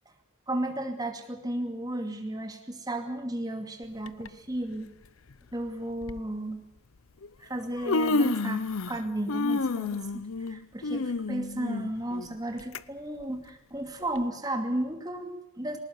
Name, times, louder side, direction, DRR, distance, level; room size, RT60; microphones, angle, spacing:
voice 1, 0.5-4.9 5.5-6.6 7.4-15.8, right 1 dB, 20° right, 5 dB, 2.5 m, -34 dB
Human voice, 4.1-4.3 5.3-5.4 6.0-6.2 7.2-7.3 7.6-9.0 9.3-12.8 13.2-13.3 14.2-14.3, left 3 dB, 75° left, 0.7 m, -29 dB
20.0 x 19.5 x 8.3 m, 0.83 s
head